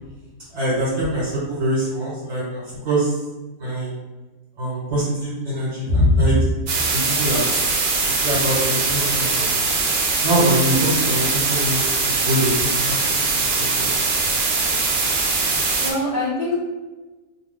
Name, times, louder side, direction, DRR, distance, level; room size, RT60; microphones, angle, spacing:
voice 1, 0.5-3.1 3.6-3.9 4.6-6.4 6.9-7.6 8.2-9.3 10.2-12.5 12.9-13.9, right 1 dB, 50° right, -8 dB, 1.2 m, -24 dB
voice 2, 5.9-6.3 15.8-16.6, left 1 dB, 40° left, -9 dB, 0.6 m, -20 dB
sound 1, 6.7-15.9, right 3 dB, 70° right, 0.4 m, -21 dB
2.5 x 2.3 x 3.4 m, 1.2 s
omnidirectional pair, 1.5 m